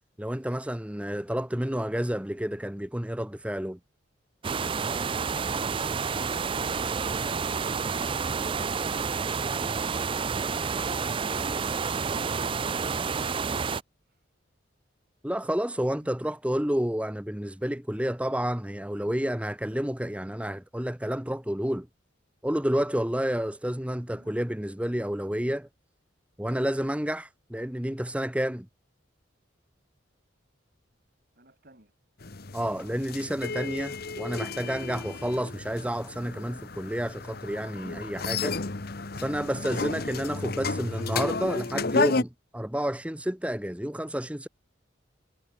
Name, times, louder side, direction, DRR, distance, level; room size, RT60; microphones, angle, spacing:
voice 1, 0.2-3.8 15.2-21.9 22.4-25.7 26.4-28.7 32.5-38.6 39.1-44.5, equal, 5° right, 1.1 m, -30 dB
sound 1, 4.4-13.8, right 5 dB, 25° right, 0.4 m, -29 dB
voice 2, 24.1-24.4 31.4-31.9, right 1 dB, 50° right, 5.2 m, -54 dB
sound 2, 32.2-42.2, left 3 dB, 50° left, 1.1 m, -32 dB
head